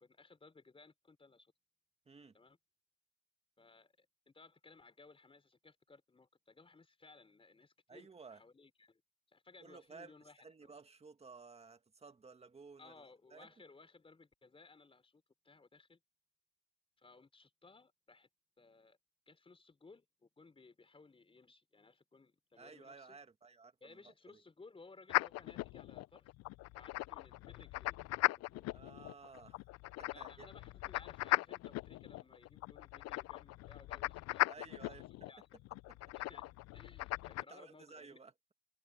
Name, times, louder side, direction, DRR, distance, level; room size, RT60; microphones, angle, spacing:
voice 1, 0.0-1.5 2.3-2.6 3.6-9.0 9.3-10.8 12.8-16.0 17.0-18.3 18.6-19.0 19.3-23.2 23.8-26.3 26.8-28.0 28.5-28.7 30.1-35.5 36.1-38.2, left 3 dB, 15° left, 4.1 m, -61 dB
voice 2, 2.1-2.4 7.9-8.4 9.6-13.5 22.6-24.4 28.7-29.7 30.0-30.5 34.5-35.0 35.9-36.1 37.4-38.3, right 4 dB, 15° right, 2.2 m, -56 dB
sound 1, 25.1-37.4, left 19 dB, 40° left, 0.5 m, -39 dB
supercardioid pair, 115°, 42 cm